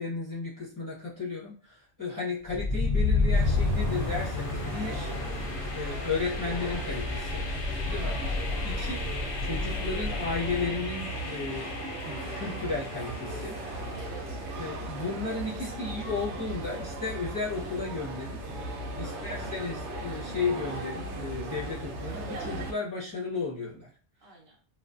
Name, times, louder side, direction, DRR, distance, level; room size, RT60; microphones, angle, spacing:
voice 1, 0.0-5.1 5.7-7.5 7.9-8.1 8.6-9.0 9.4-11.7 12.0-13.6 14.6-18.4 19.0-23.9, left 4 dB, 25° left, -7 dB, 0.6 m, -34 dB
sound 1, 2.4-14.3, left 3 dB, 60° left, 0.7 m, -31 dB
sound 2, 3.3-22.7, right 1 dB, 90° right, 0.9 m, -37 dB
voice 2, 5.1-5.5 8.0-8.4 8.8-9.1 13.9-14.4 15.5-16.2 19.0-19.4 24.2-24.6, right 3 dB, 65° right, -2 dB, 0.9 m, -51 dB
2.4 x 2.2 x 2.4 m, 0.41 s
omnidirectional pair, 1.1 m